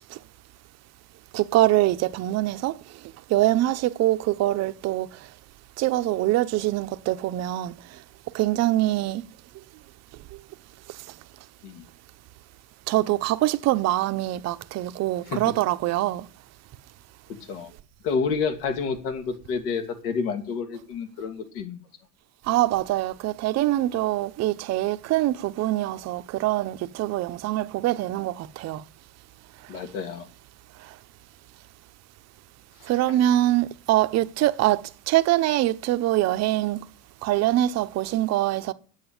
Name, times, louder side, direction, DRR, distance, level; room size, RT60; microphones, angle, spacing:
voice 1, 1.3-2.8 3.3-5.1 5.8-8.0 8.3-9.2 12.9-16.3 22.5-28.8 30.8-30.9 32.8-36.8 37.2-38.7, right 15 dB, 35° right, 0.7 m, -24 dB
voice 2, 18.0-21.8 29.7-30.3 32.8-32.9, left 5 dB, 70° left, 2.6 m, -29 dB
9.1 x 8.5 x 8.7 m
supercardioid pair, 125°, 46 cm